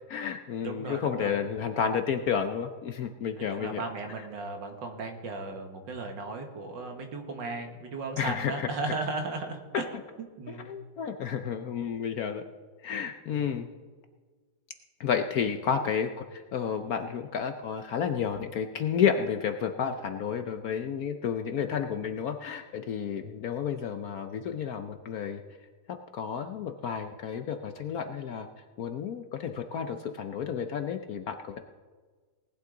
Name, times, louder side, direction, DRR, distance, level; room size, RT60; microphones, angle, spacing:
voice 1, 0.1-3.8 4.2-4.3 8.2-8.7 9.7-10.0 10.5-12.4 12.8-13.7 15.0-25.4 25.9-28.5 28.8-31.6, left 7 dB, 65° left, 7 dB, 1.0 m, -31 dB
voice 2, 0.6-1.3 3.5-9.8 10.4-10.7 13.3-13.4, right 3 dB, 70° right, 4 dB, 2.2 m, -36 dB
19.0 x 11.5 x 3.9 m, 1.4 s
omnidirectional pair, 2.1 m